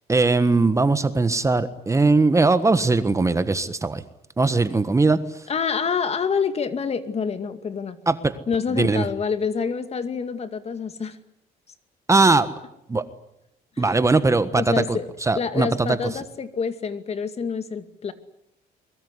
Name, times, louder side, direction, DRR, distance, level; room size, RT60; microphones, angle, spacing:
voice 1, 0.1-4.0 4.4-5.2 8.1-8.3 8.7-9.0 12.1-12.5 12.9-13.0 13.8-16.0, right 3 dB, 15° right, 12 dB, 1.4 m, -20 dB
voice 2, 5.5-8.0 8.5-11.2 13.8-14.0 14.5-18.1, left 6 dB, 40° left, 10 dB, 2.4 m, -27 dB
23.5 x 22.0 x 9.8 m, 0.80 s
cardioid pair, 110°, 17 cm